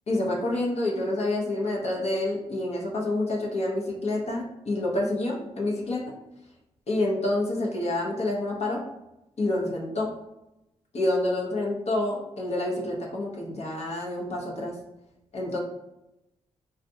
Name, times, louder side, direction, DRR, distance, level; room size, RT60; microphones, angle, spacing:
voice 1, 0.1-6.1 6.9-8.8 9.4-10.1 10.9-14.8 15.3-15.6, left 2 dB, 55° left, -2 dB, 0.8 m, -28 dB
3.4 x 2.4 x 2.7 m, 0.91 s
cardioid pair, 55°, 13 cm